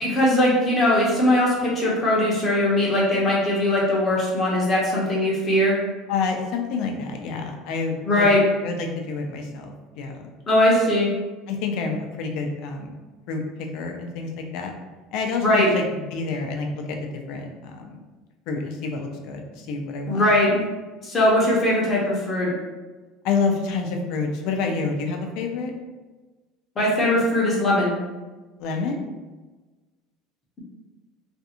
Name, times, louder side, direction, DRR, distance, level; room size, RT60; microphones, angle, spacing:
voice 1, 0.0-5.8 8.0-8.4 10.5-11.1 15.4-15.7 20.1-20.6 21.0-22.5 26.8-27.9, left 1 dB, 25° left, -5 dB, 0.7 m, -20 dB
voice 2, 6.1-8.3 8.6-10.3 11.5-12.9 13.3-13.4 13.7-14.7 15.1-15.8 16.1-17.0 17.3-18.0 18.5-20.3 23.2-25.7 28.6-29.0, left 4 dB, 60° left, 3 dB, 0.4 m, -28 dB
2.5 x 2.3 x 2.8 m, 1.2 s
cardioid pair, 150°, 0 cm